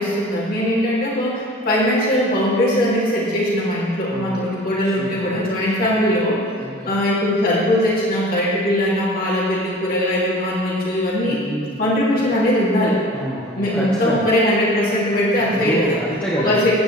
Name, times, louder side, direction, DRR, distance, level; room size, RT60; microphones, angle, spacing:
voice 1, 0.0-6.4 6.9-11.4 11.8-13.0 13.6-16.0 16.4-16.7, left 1 dB, 50° left, -7 dB, 2.8 m, -20 dB
voice 2, 4.1-4.4 4.8-5.4 6.6-6.9 11.3-11.8 13.1-14.3 15.5-16.7, right 1 dB, 10° left, -10 dB, 1.5 m, -27 dB
15.0 x 9.4 x 3.4 m, 2.2 s
head